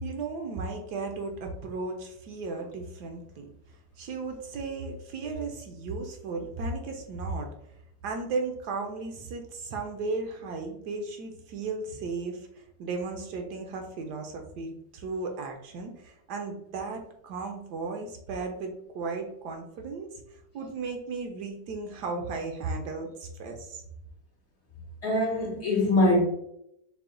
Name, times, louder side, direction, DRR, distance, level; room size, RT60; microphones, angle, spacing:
voice 1, 0.0-7.5 8.0-23.8, right 3 dB, 75° right, 3 dB, 1.1 m, -35 dB
voice 2, 25.0-26.2, left 1 dB, 55° left, -2 dB, 0.8 m, -23 dB
4.7 x 2.1 x 3.7 m, 0.78 s
omnidirectional pair, 1.9 m